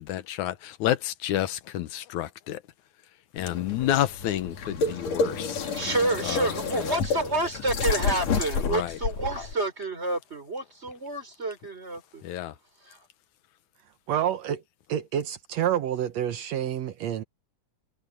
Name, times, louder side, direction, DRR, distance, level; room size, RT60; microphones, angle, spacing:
voice 1, 0.0-2.6 3.3-5.7 6.3-7.0 8.6-9.0 12.2-12.5, left 12 dB, 90° left, 2.4 m, -30 dB
sound 1, 3.4-9.5, left 4 dB, 65° left, 3.7 m, -29 dB
voice 2, 5.7-12.2 12.8-13.0, right 2 dB, 20° right, 4.4 m, -29 dB
voice 3, 14.1-14.6 14.9-17.2, right 10 dB, 70° right, 2.0 m, -28 dB
omnidirectional pair, 3.3 m